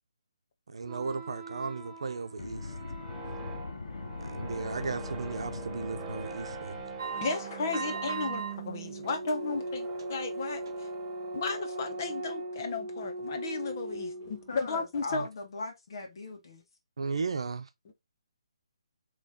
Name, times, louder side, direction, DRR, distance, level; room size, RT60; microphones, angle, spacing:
voice 1, 0.7-2.7 4.2-6.8 15.1-15.2 17.0-17.7, right 4 dB, 70° right, 0.8 m, -35 dB
sound 1, 0.8-14.6, right 2 dB, 15° right, 0.5 m, -40 dB
sound 2, 2.4-7.1, left 3 dB, 90° left, 0.5 m, -41 dB
sound 3, 7.0-8.5 8.9-9.6 9.9-10.2 10.7-10.8, right 5 dB, 40° right, 1.0 m, -37 dB
voice 2, 7.2-10.9 11.3-15.3 17.9-18.0, left 4 dB, 35° left, 0.8 m, -34 dB
voice 3, 13.9-16.6, left 3 dB, 55° left, 1.5 m, -40 dB
4.1 x 3.1 x 3.6 m
hypercardioid pair, 170°, 3 cm